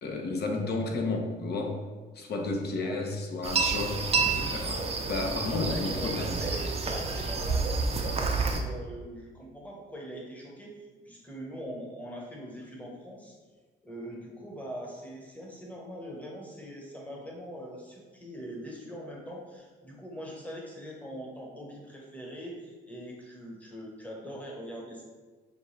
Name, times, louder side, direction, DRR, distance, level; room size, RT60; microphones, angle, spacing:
voice 1, 0.0-1.8 2.1-6.3, left 3 dB, 55° left, 2 dB, 0.7 m, -32 dB
sound 1, 3.4-8.6, right 4 dB, 30° right, 0.5 m, -29 dB
voice 2, 5.6-13.4 13.8-25.0, equal, 5° left, -2 dB, 0.9 m, -42 dB
5.3 x 2.3 x 3.1 m, 1.3 s
cardioid pair, 90°, 20 cm